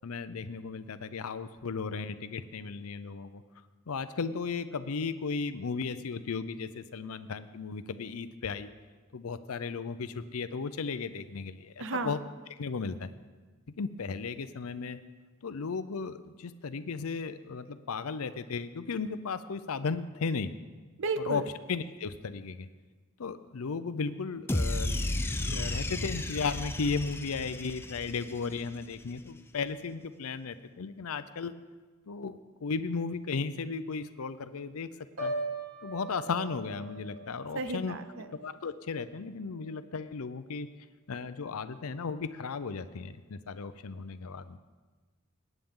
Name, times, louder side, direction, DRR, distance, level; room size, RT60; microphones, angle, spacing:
voice 1, 0.0-3.4 3.9-8.7 9.1-12.2 12.5-13.1 13.8-15.0 15.4-20.5 21.2-21.4 21.7-22.7 23.2-25.0 25.5-31.5 32.1-34.9 35.2-35.3 35.8-38.0 38.4-40.7 41.1-44.6, left 5 dB, 70° left, 12 dB, 0.6 m, -35 dB
voice 2, 11.8-12.1 21.0-21.4 37.6-38.2, right 3 dB, 60° right, 11 dB, 0.7 m, -33 dB
sound 1, 24.5-28.8, left 1 dB, 10° left, 0.4 m, -33 dB
Piano, 35.2-39.1 39.5-39.9, right 1 dB, 80° right, 2.5 m, -40 dB
19.0 x 9.2 x 3.7 m, 1.3 s
head